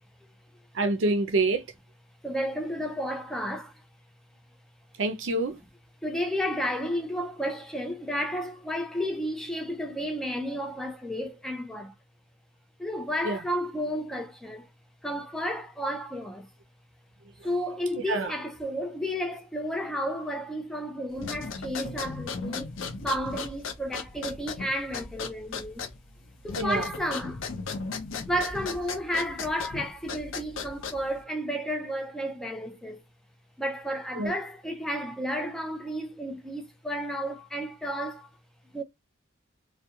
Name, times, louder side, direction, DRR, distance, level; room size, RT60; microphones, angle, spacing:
voice 1, 0.7-1.7 5.0-5.6 13.2-13.4 18.1-18.3 26.6-26.9 34.2-34.3, right 2 dB, 65° right, 0.5 m, -26 dB
voice 2, 2.2-3.7 6.0-11.9 12.8-14.7 15.0-16.5 17.4-22.7 23.0-25.8 26.4-27.4 28.3-33.0 33.6-38.3 38.7-38.8, equal, ahead, 0.3 m, -32 dB
sound 1, 21.1-31.2, left 4 dB, 75° left, 0.5 m, -37 dB
2.3 x 2.1 x 2.7 m
head